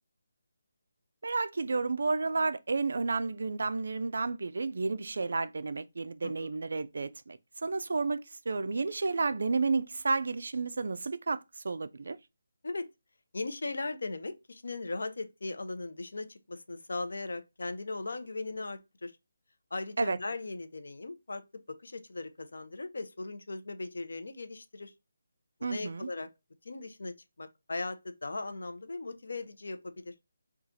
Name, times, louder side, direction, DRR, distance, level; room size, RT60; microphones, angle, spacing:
voice 1, 1.2-11.4 11.6-12.2 20.0-20.2 25.6-26.1, right 3 dB, 55° right, 0.3 m, -31 dB
voice 2, 13.3-19.1 19.7-21.4 21.8-24.9 25.6-26.3 26.6-30.1, left 3 dB, 70° left, 0.6 m, -38 dB
4.3 x 2.3 x 2.5 m
hypercardioid pair, 175°, 0 cm